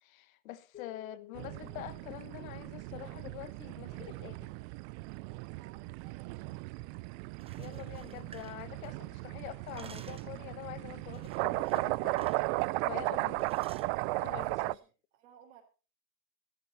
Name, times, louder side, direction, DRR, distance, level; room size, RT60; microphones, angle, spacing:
voice 1, 0.0-4.5 7.6-12.4 12.8-13.5 14.2-14.8, left 13 dB, 85° left, 1.4 m, -45 dB
sound 1, 0.7-3.3, left 17 dB, 25° left, 2.6 m, -54 dB
sound 2, 1.4-14.7, right 22 dB, 55° right, 0.6 m, -36 dB
voice 2, 5.6-6.6 14.3-15.6, right 9 dB, 80° right, 4.0 m, -59 dB
sound 3, 7.4-9.2 9.5-10.4 11.1-12.5 12.7-12.9 13.4-13.9, right 6 dB, 15° right, 0.9 m, -55 dB
14.5 x 14.0 x 4.2 m
supercardioid pair, 135°, 40 cm